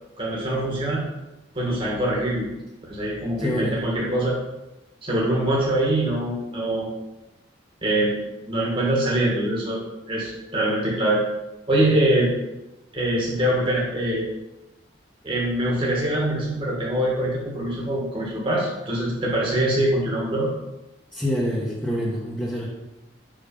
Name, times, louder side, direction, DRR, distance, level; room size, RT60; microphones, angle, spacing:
voice 1, 0.2-1.0 1.5-2.5 2.9-4.4 5.0-6.9 7.8-8.2 8.5-9.8 10.1-11.2 11.7-12.3 12.9-14.3 15.2-20.5, right 1 dB, 30° right, -4 dB, 1.5 m, -23 dB
voice 2, 3.4-3.8 21.1-22.7, equal, 5° left, -6 dB, 1.1 m, -26 dB
6.1 x 5.1 x 5.3 m, 0.98 s
head